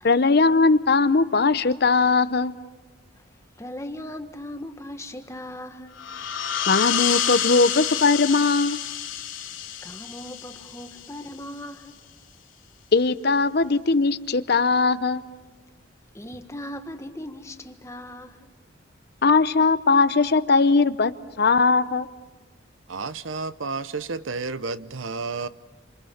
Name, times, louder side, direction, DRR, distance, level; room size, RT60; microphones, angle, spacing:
voice 1, 0.0-2.5 6.7-8.8 12.9-15.2 19.2-21.1 21.4-22.1, left 4 dB, 55° left, 0.7 m, -19 dB
voice 2, 3.6-6.0 9.8-12.0 16.1-18.5, left 1 dB, 15° left, 1.4 m, -38 dB
sound 1, 6.0-11.3, left 9 dB, 90° left, 3.4 m, -28 dB
voice 3, 22.9-25.5, right 4 dB, 80° right, 0.8 m, -31 dB
28.5 x 27.0 x 7.2 m
head